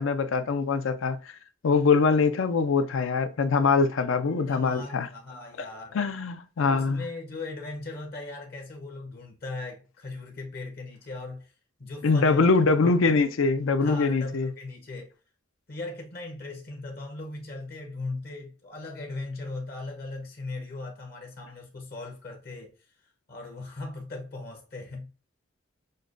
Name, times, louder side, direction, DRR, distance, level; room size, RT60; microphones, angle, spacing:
voice 1, 0.0-1.3 1.6-5.1 5.9-7.0 12.0-14.5, left 4 dB, 85° left, 0.5 m, -23 dB
voice 2, 4.5-6.0 6.6-11.5 11.8-12.5 13.8-15.1 15.7-22.9 23.3-25.1, left 2 dB, 50° left, 0.7 m, -38 dB
6.4 x 2.2 x 2.4 m
head